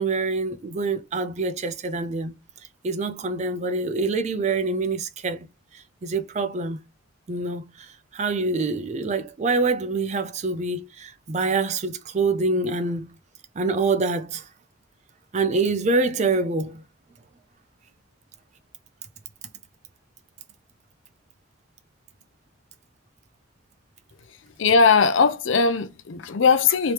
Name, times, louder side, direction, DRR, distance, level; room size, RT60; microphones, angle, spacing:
voice 1, 0.0-2.3 2.8-5.5 5.7-6.8 7.3-13.1 13.6-14.5 15.3-16.8, right 3 dB, 35° right, 0.4 m, -25 dB
voice 2, 24.6-26.9, left 5 dB, 65° left, 0.5 m, -19 dB
3.0 x 2.9 x 3.3 m
head